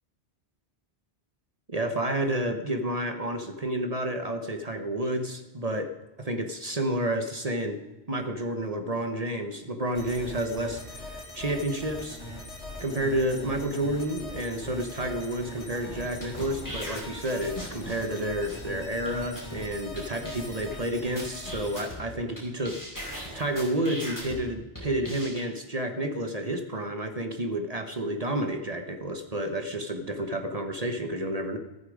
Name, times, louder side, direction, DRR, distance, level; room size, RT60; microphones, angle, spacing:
voice 1, 1.7-7.8 8.1-12.2 12.8-31.6, right 1 dB, 35° right, 6 dB, 1.2 m, -30 dB
sound 1, 9.9-21.8, left 1 dB, 85° left, 2.8 m, -41 dB
sound 2, 16.1-18.2 18.5-18.6 19.1-19.2 19.4-19.6 20.0-20.1 20.2-20.8 21.2-22.4 22.6-24.4 24.7-25.4, equal, 15° left, 5.3 m, -39 dB
14.0 x 14.0 x 5.0 m, 1.1 s
omnidirectional pair, 1.1 m